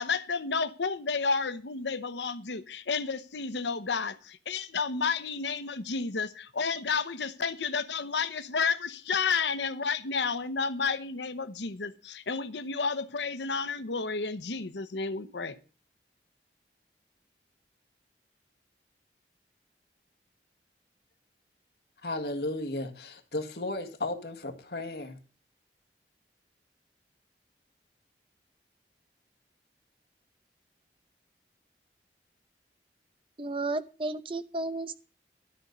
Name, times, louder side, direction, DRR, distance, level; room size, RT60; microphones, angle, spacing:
voice 1, 0.0-15.6, left 5 dB, 85° left, 12 dB, 0.9 m, -31 dB
voice 2, 22.0-25.2, left 2 dB, 70° left, 4 dB, 1.8 m, -34 dB
voice 3, 33.4-35.0, right 2 dB, 30° right, 12 dB, 0.8 m, -33 dB
13.0 x 5.2 x 8.1 m, 0.36 s
head